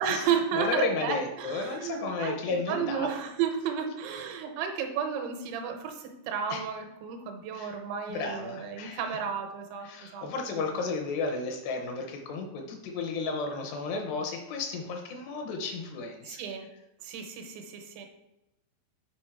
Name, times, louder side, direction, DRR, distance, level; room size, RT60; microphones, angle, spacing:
voice 1, 0.0-9.9 10.1-10.6 16.2-16.7 17.0-18.1, right 7 dB, 80° right, 4 dB, 3.2 m, -32 dB
voice 2, 0.5-3.1 6.5-6.6 7.5-7.7 8.1-9.0 9.8-16.4, left 4 dB, 80° left, 2 dB, 2.7 m, -33 dB
7.5 x 5.2 x 4.5 m, 0.97 s
omnidirectional pair, 5.3 m